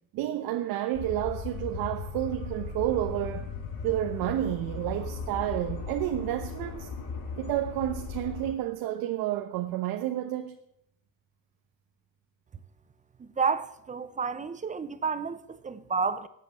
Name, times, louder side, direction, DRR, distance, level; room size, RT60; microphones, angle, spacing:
voice 1, 0.1-3.5 3.8-6.9 7.4-10.6, right 13 dB, 90° right, 1.2 m, -30 dB
sound 1, 0.9-8.5, left 5 dB, 80° left, 3.7 m, -37 dB
voice 2, 13.2-16.3, right 5 dB, 20° right, 0.7 m, -30 dB
19.0 x 8.3 x 7.3 m
cardioid pair, 155°, 35 cm